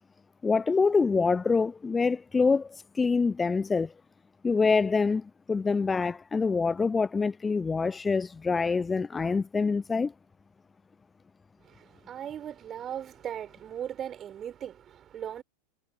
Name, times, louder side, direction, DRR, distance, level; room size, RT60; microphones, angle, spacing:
voice 1, 0.4-3.9 4.4-10.1, left 4 dB, 15° left, 0.5 m, -26 dB
voice 2, 11.6-15.4, right 9 dB, 25° right, 6.9 m, -38 dB
figure-of-eight pair, 90°, 0 cm